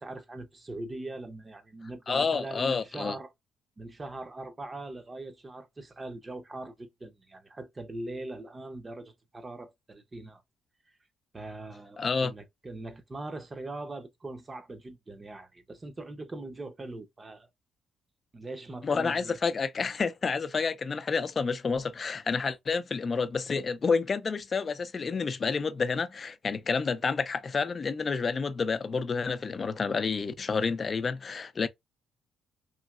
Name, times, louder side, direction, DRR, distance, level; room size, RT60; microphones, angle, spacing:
voice 1, 0.0-3.3 3.8-10.4 11.3-17.5 18.3-19.4, right 2 dB, 25° right, 0.7 m, -41 dB
voice 2, 2.1-3.2 12.0-12.3 18.8-31.7, left 5 dB, 40° left, 0.5 m, -29 dB
3.1 x 2.7 x 2.3 m
cardioid pair, 90°, 0 cm